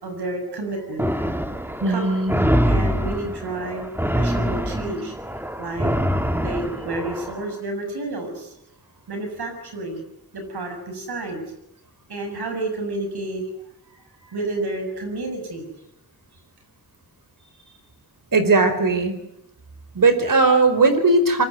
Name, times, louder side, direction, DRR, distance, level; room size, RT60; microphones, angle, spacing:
voice 1, 0.0-1.2 1.5-2.1 2.7-5.1 5.6-5.9 6.4-8.5 9.1-10.0 10.3-11.4 12.1-13.5 14.2-15.7 17.7-17.8, right 2 dB, 80° right, 5 dB, 7.0 m, -30 dB
sound 1, 1.0-7.4, equal, 5° right, 2.2 m, -24 dB
voice 2, 1.8-2.3 18.3-19.2 19.9-21.5, right 3 dB, 55° right, 9 dB, 4.7 m, -18 dB
24.0 x 22.0 x 9.6 m, 0.82 s
cardioid pair, 50°, 38 cm